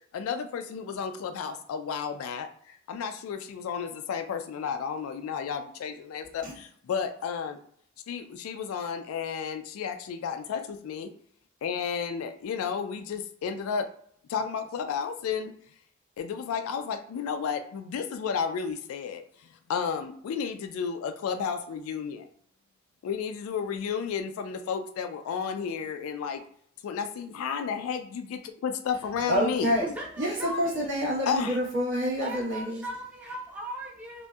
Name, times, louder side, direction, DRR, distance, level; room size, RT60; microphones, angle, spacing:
voice 1, 0.1-7.6 8.1-11.1 11.6-13.9 14.3-15.5 16.2-19.2 19.7-22.3 23.0-26.4 26.8-29.7 31.3-31.6, left 6 dB, 90° left, 12 dB, 0.3 m, -32 dB
voice 2, 29.2-29.9 30.2-32.8, equal, 60° right, -4 dB, 1.0 m, -27 dB
voice 3, 29.8-30.9 32.2-34.3, right 1 dB, 10° right, -3 dB, 0.5 m, -38 dB
2.6 x 2.1 x 2.2 m, 0.63 s
head